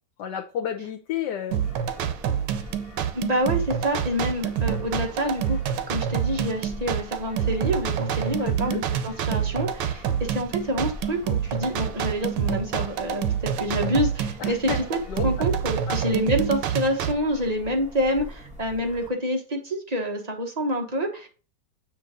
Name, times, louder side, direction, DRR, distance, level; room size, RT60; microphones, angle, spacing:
voice 1, 0.2-1.6 8.4-8.8 14.4-15.3 15.9-16.0, left 9 dB, 75° left, 5 dB, 1.4 m, -31 dB
sound 1, 1.5-19.1, left 1 dB, 5° right, 1.6 m, -44 dB
sound 2, 1.5-17.1, right 9 dB, 85° right, 1.3 m, -27 dB
voice 2, 3.1-5.6 5.9-15.0 15.2-21.3, equal, 25° right, 2 dB, 1.2 m, -27 dB
7.5 x 3.1 x 5.1 m, 0.36 s
omnidirectional pair, 1.9 m